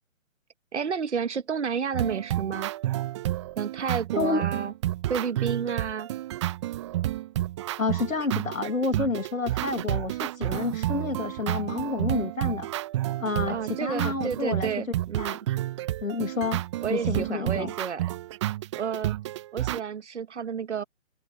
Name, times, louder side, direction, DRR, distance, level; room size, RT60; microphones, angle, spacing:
voice 1, 0.7-2.7 3.6-4.7 5.1-6.1 13.5-15.4 16.8-18.0 18.7-19.1 19.5-20.8, right 6 dB, 60° right, 1.5 m, -30 dB
sound 1, 1.9-19.8, right 14 dB, 20° right, 1.1 m, -30 dB
voice 2, 4.2-4.5 7.8-12.7 13.2-14.7 15.2-15.4 16.0-16.6 16.9-17.7, left 3 dB, 80° left, 2.8 m, -29 dB
figure-of-eight pair, 145°, 40 cm